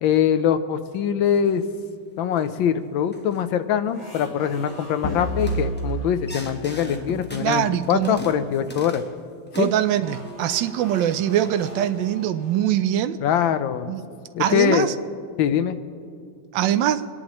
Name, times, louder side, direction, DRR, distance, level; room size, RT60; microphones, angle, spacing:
voice 1, 0.0-1.6 2.2-9.0 9.6-9.7 13.2-13.9 14.3-14.9 15.4-15.8, left 9 dB, 90° left, 10 dB, 1.5 m, -23 dB
sound 1, 1.4-1.9 2.4-2.6 3.1-3.5 3.9-4.2 4.5-4.8 5.3-9.2 9.5-10.6 11.1-12.1, left 1 dB, 15° left, 0.4 m, -42 dB
sound 2, 3.9-7.8 10.0-14.4, right 1 dB, 30° left, 4.0 m, -43 dB
sound 3, 5.0-7.6, right 1 dB, 50° left, 1.3 m, -30 dB
voice 2, 7.4-8.2 9.6-13.2 13.9-14.0 14.4-15.0 16.5-17.1, right 11 dB, 80° right, 11 dB, 1.3 m, -23 dB
27.0 x 10.5 x 3.1 m, 2.4 s
omnidirectional pair, 2.1 m